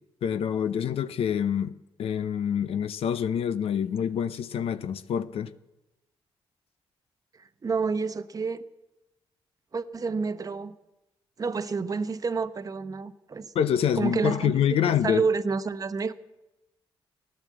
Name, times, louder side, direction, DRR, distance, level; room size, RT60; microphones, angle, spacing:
voice 1, 0.2-1.7 2.0-5.5 13.5-15.2, left 8 dB, 70° left, 0.6 m, -26 dB
voice 2, 7.6-8.6 9.7-10.8 11.4-13.5 14.0-14.5 14.8-16.1, right 4 dB, 35° right, 0.8 m, -29 dB
16.0 x 10.5 x 7.5 m
cardioid pair, 75°, 10 cm